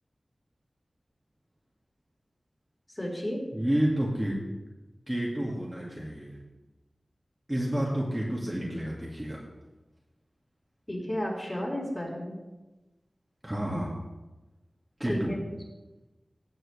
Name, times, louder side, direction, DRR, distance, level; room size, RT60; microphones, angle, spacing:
voice 1, 2.9-3.4 10.9-12.4 15.0-15.4, equal, 25° left, -4 dB, 4.1 m, -33 dB
voice 2, 3.5-4.4 5.1-6.4 7.5-9.4 13.4-14.0 15.0-15.3, right 1 dB, 15° right, -4 dB, 1.9 m, -30 dB
17.0 x 7.8 x 3.3 m, 1.1 s
wide cardioid pair, 75°, 0 cm